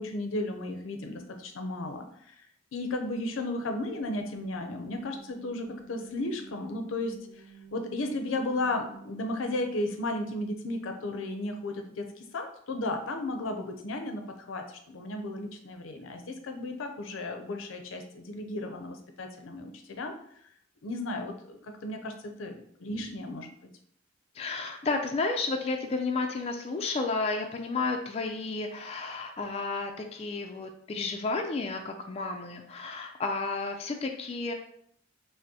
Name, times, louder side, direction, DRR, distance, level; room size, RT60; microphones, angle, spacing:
voice 1, 0.0-2.4 2.7-7.2 7.7-20.1 20.8-23.5, left 2 dB, 80° left, 5 dB, 0.5 m, -34 dB
sound 1, 3.5-11.3, right 4 dB, 40° right, 0.4 m, -54 dB
voice 2, 24.3-34.5, left 3 dB, 30° left, 3 dB, 0.3 m, -32 dB
5.1 x 2.0 x 2.7 m, 0.67 s
head